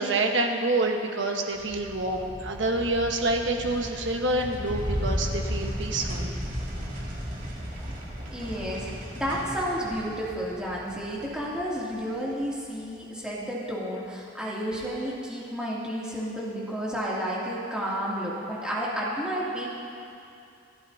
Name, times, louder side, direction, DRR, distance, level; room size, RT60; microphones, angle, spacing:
voice 1, 0.0-6.3, right 2 dB, 80° right, 2 dB, 1.3 m, -27 dB
sound 1, 1.6-12.1, equal, 45° right, 2.6 m, -35 dB
voice 2, 8.3-19.7, equal, 5° right, -7 dB, 2.6 m, -31 dB
27.5 x 11.0 x 2.8 m, 2.6 s
head